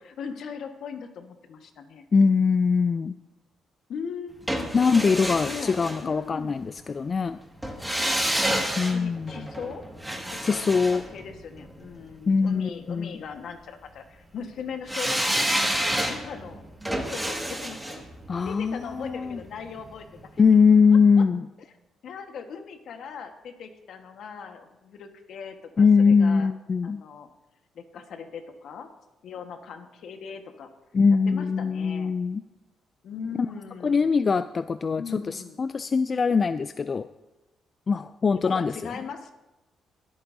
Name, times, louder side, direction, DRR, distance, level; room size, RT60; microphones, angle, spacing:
voice 1, 0.0-2.0 3.9-4.7 5.4-6.7 8.8-9.8 10.2-15.6 16.1-16.6 17.1-18.1 18.4-20.3 22.0-26.5 26.8-27.3 27.7-28.9 29.2-30.7 31.3-32.1 33.0-34.1 34.9-35.6 38.4-39.3, left 6 dB, 70° left, 6 dB, 1.3 m, -39 dB
voice 2, 2.1-3.2 4.7-7.4 8.8-9.4 10.4-11.0 12.3-13.2 18.3-19.4 20.4-21.5 25.8-27.0 30.9-32.4 33.8-37.1 37.9-38.7, left 5 dB, 40° left, 12 dB, 0.3 m, -22 dB
sound 1, 4.5-6.6 7.6-11.9 14.9-19.9 20.2-20.3, right 1 dB, 5° right, 1.8 m, -29 dB
22.0 x 8.6 x 2.7 m, 1.0 s
cardioid pair, 90°, 0 cm